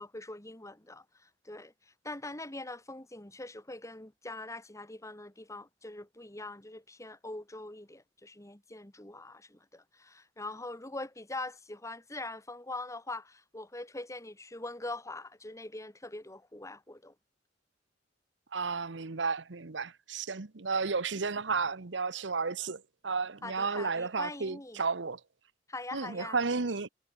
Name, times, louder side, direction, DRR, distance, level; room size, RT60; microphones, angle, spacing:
voice 1, 0.0-1.7 2.0-17.1 23.4-24.8 25.7-26.7, left 2 dB, 15° left, 2.7 m, -43 dB
voice 2, 18.5-25.2 25.9-26.9, right 4 dB, 75° right, 1.1 m, -33 dB
head